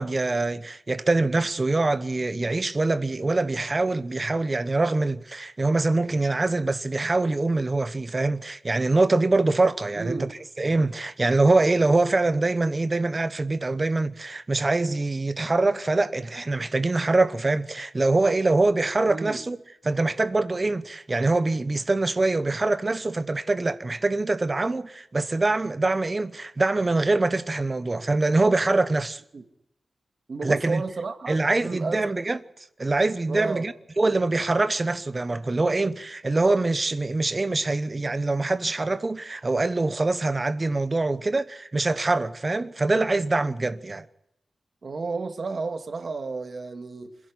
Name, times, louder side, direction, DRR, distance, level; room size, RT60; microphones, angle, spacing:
voice 1, 0.0-10.3 10.6-19.6 19.8-29.2 30.4-30.8 31.3-32.4 32.8-44.0, right 2 dB, 30° right, 1.0 m, -24 dB
voice 2, 10.0-10.3 19.1-19.4 29.3-29.4 30.3-32.1 33.3-33.7 44.8-47.2, right 4 dB, 50° right, 2.2 m, -32 dB
26.5 x 11.0 x 9.7 m
wide cardioid pair, 110°, 0 cm